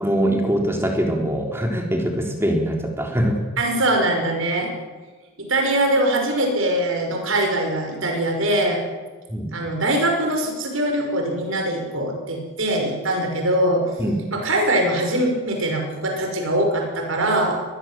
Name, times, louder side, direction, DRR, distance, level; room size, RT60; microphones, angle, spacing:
voice 1, 0.0-3.4 9.3-9.5 14.0-14.2, equal, 10° right, 2 dB, 3.6 m, -22 dB
voice 2, 3.6-4.7 5.4-8.8 9.5-13.8 14.3-17.6, right 1 dB, 75° right, 3 dB, 5.9 m, -22 dB
23.0 x 21.0 x 7.6 m, 1.4 s
head